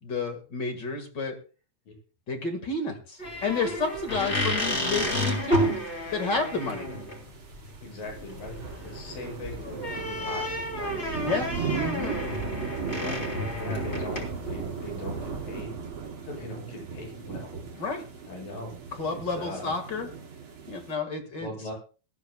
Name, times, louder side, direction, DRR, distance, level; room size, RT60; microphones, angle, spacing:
voice 1, 0.0-1.4 2.3-5.8 6.1-6.9 11.2-11.5 11.7-12.2 17.8-18.0 18.9-20.1 20.7-21.5, left 3 dB, 40° left, 6 dB, 1.8 m, -30 dB
sound 1, 3.2-15.6, equal, 20° left, 3.5 m, -31 dB
sound 2, 3.7-20.9, right 6 dB, 40° right, 2.5 m, -39 dB
voice 2, 7.8-8.6 8.8-11.6 11.9-12.2 12.8-13.2 13.5-15.8 16.2-17.9 18.3-18.7 19.3-19.7 21.4-21.7, left 1 dB, 65° left, 0 dB, 9.3 m, -40 dB
19.5 x 14.5 x 2.3 m, 0.35 s
omnidirectional pair, 4.2 m